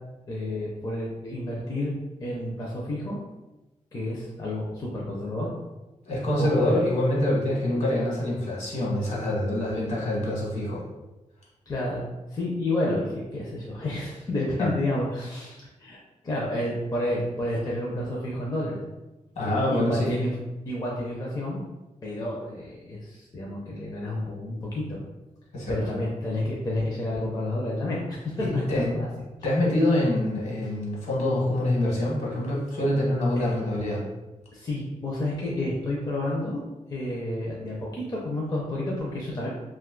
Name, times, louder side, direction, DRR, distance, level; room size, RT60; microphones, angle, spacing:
voice 1, 0.3-1.9 2.2-3.2 3.9-5.5 6.4-6.8 11.7-12.0 12.3-16.0 16.2-18.8 19.4-20.3 20.7-21.6 22.0-25.0 25.7-29.1 33.3-33.6 34.5-36.6 36.9-39.5, left 1 dB, 30° left, -4 dB, 0.5 m, -30 dB
voice 2, 6.0-10.8 14.6-14.7 19.3-20.1 25.5-25.9 28.4-28.9 29.4-34.0, left 1 dB, 65° left, -5 dB, 1.2 m, -25 dB
2.6 x 2.3 x 3.7 m, 1.1 s
wide cardioid pair, 160°, 13 cm